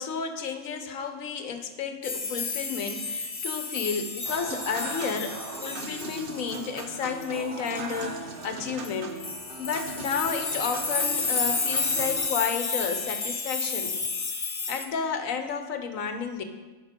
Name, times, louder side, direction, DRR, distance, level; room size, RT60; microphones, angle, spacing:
voice 1, 0.0-9.2 9.6-14.0 14.7-16.4, left 6 dB, 75° left, 7 dB, 1.3 m, -32 dB
sound 1, 2.0-8.2 8.8-8.9 9.2-14.8, left 4 dB, 30° left, 0.7 m, -31 dB
Human voice / Acoustic guitar / Piano, 4.3-12.3, right 4 dB, 45° right, 1.0 m, -39 dB
12.0 x 5.9 x 5.2 m, 1.3 s
omnidirectional pair, 1.4 m